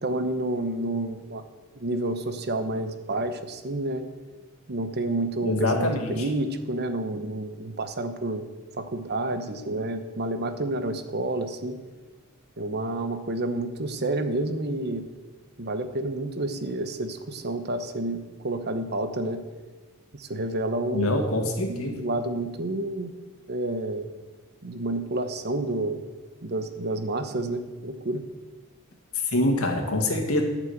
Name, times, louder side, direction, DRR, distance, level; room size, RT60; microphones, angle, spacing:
voice 1, 0.0-1.4 1.8-4.0 4.7-8.5 8.8-11.8 12.6-15.0 15.6-19.4 20.1-21.2 21.6-23.1 23.5-24.1 24.6-26.0 26.4-28.2, right 2 dB, 50° right, 9 dB, 1.0 m, -29 dB
voice 2, 5.4-6.1 20.9-21.9 29.3-30.4, left 1 dB, 85° left, 3 dB, 1.8 m, -24 dB
11.5 x 6.2 x 8.0 m, 1.3 s
head